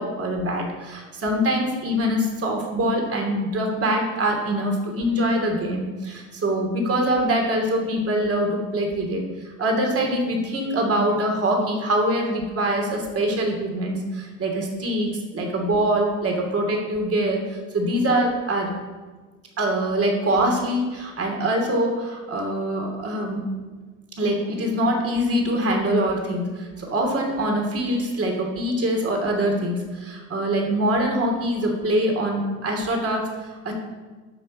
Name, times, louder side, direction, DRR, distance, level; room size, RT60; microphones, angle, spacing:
voice 1, 0.0-9.2 9.6-18.7 19.6-23.4 24.2-33.7, right 1 dB, 40° right, 1 dB, 3.0 m, -24 dB
9.9 x 5.9 x 7.3 m, 1.3 s
hypercardioid pair, 70°, 38 cm